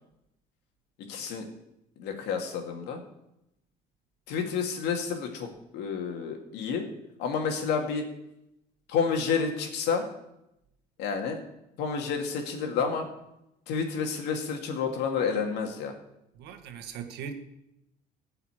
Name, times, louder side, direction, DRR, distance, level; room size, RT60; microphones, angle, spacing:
voice 1, 1.0-1.5 2.0-3.0 4.3-6.9 7.2-8.0 8.9-10.0 11.0-11.4 11.8-13.1 13.7-15.9, left 6 dB, 90° left, 3 dB, 2.2 m, -30 dB
voice 2, 16.3-17.3, right 7 dB, 80° right, 6 dB, 1.6 m, -39 dB
15.0 x 5.7 x 8.8 m, 0.87 s
cardioid pair, 110°, 17 cm